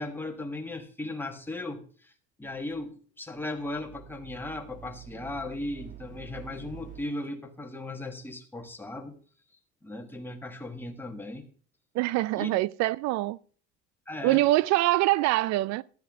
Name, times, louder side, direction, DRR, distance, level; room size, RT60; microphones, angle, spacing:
voice 1, 0.0-2.1 2.4-9.2 9.8-11.4 12.3-12.5 14.1-14.4, left 2 dB, 5° left, 1.5 m, -37 dB
sound 1, 3.6-7.0, right 10 dB, 25° right, 1.4 m, -47 dB
voice 2, 11.9-13.4 14.2-15.8, right 17 dB, 60° right, 0.5 m, -24 dB
13.0 x 9.7 x 3.6 m
cardioid pair, 125°, 30 cm